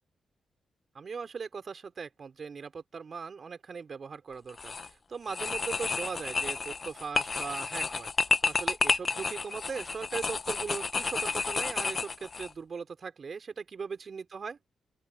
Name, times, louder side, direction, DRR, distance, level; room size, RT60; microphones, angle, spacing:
voice 1, 0.9-14.6, right 5 dB, 50° right, 4.0 m, -39 dB
sound 1, 4.5-4.9 5.3-12.5, left 4 dB, 40° left, 0.7 m, -31 dB
open air
cardioid pair, 85°, 0 cm